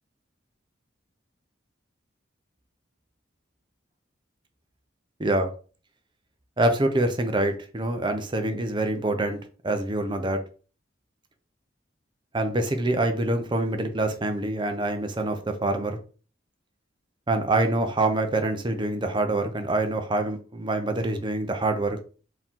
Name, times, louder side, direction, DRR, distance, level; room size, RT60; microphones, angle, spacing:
voice 1, 6.6-10.4 12.3-16.0 17.3-22.0, right 2 dB, 25° right, 0.7 m, -25 dB
4.5 x 2.9 x 3.6 m
head